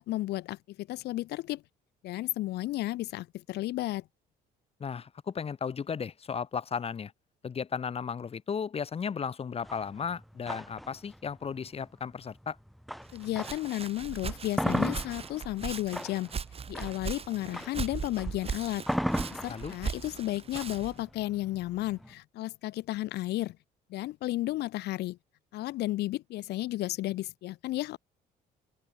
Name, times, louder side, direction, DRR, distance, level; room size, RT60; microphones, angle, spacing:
voice 1, 0.0-1.6 2.0-4.0 13.1-16.3 16.7-18.8 19.3-23.6 23.9-25.2 25.5-28.0, left 16 dB, 80° left, 1.8 m, -33 dB
voice 2, 4.8-7.1 7.4-12.6 19.5-19.7, left 6 dB, 35° left, 2.5 m, -35 dB
sound 1, 9.6-13.8 14.2-22.1, equal, ahead, 2.1 m, -36 dB
Walk footsteps, 13.1-21.0, right 6 dB, 35° right, 4.9 m, -39 dB
cardioid pair, 110°, 17 cm